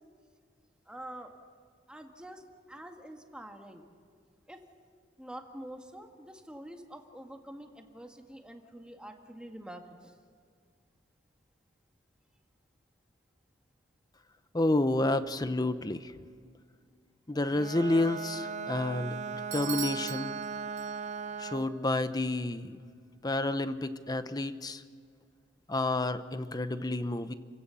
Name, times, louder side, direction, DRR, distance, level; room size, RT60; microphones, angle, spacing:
voice 1, 0.9-1.3 1.9-2.4 2.7-3.9 4.5-4.6 5.2-10.1, right 1 dB, 5° right, 3 dB, 1.8 m, -46 dB
voice 2, 14.5-16.1 17.3-19.2 19.5-20.4 21.4-22.8 23.2-24.8 25.7-27.3, left 2 dB, 20° left, 12 dB, 0.8 m, -30 dB
Bowed string instrument, 17.5-21.8, right 5 dB, 40° right, 0.8 m, -38 dB
Bell / Doorbell, 19.5-21.4, right 13 dB, 80° right, 0.7 m, -40 dB
30.0 x 16.0 x 7.0 m, 2.1 s
head